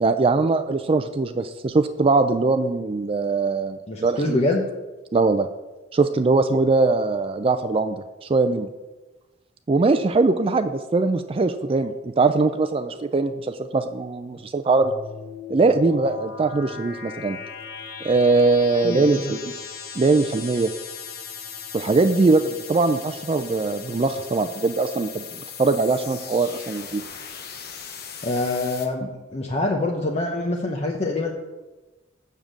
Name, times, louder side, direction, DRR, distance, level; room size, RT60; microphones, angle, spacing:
voice 1, 0.0-4.4 5.1-5.5 5.9-8.7 9.7-14.9 15.5-17.4 18.0-19.4 20.0-20.7 21.7-25.2 25.6-27.0, right 3 dB, 30° right, 9 dB, 0.4 m, -21 dB
voice 2, 3.9-4.6 18.8-19.4 28.2-31.3, left 2 dB, 35° left, 1 dB, 0.8 m, -25 dB
sound 1, 14.8-28.9, left 6 dB, 55° left, 1.1 m, -38 dB
7.2 x 6.6 x 7.4 m, 1.1 s
head